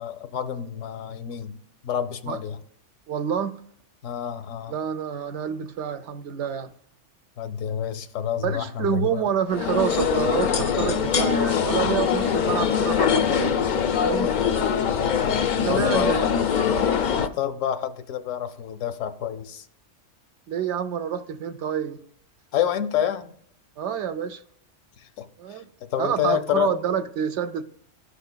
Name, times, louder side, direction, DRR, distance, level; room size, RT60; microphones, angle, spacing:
voice 1, 0.0-1.6 1.8-2.6 4.0-4.7 7.4-9.2 14.9-16.3 17.2-19.7 22.5-23.3 25.2-25.3 25.8-26.7, left 9 dB, 90° left, 1.0 m, -28 dB
voice 2, 3.1-3.6 4.7-6.7 8.4-14.3 15.6-16.3 20.5-22.0 23.8-24.4 25.4-25.7 26.0-27.6, right 8 dB, 70° right, 0.9 m, -28 dB
sound 1, 9.5-17.3, left 7 dB, 65° left, 0.4 m, -23 dB
12.5 x 5.7 x 2.2 m
omnidirectional pair, 1.3 m